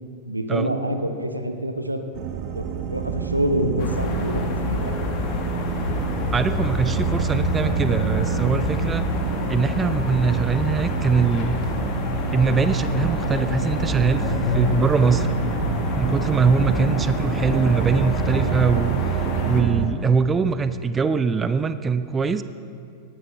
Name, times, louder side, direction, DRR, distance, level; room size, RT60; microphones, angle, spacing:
voice 1, 0.3-2.0 2.5-4.9, right 1 dB, 85° right, 7 dB, 0.9 m, -26 dB
sound 1, 2.1-19.9, right 8 dB, 40° right, 1.0 m, -28 dB
sound 2, 3.8-19.6, left 3 dB, 40° left, 1.5 m, -27 dB
voice 2, 6.3-9.0 9.5-11.6 12.3-15.3 15.9-19.1 19.4-22.4, right 5 dB, 20° right, 12 dB, 0.4 m, -22 dB
18.0 x 11.0 x 3.5 m, 2.3 s
figure-of-eight pair, 90°, 0 cm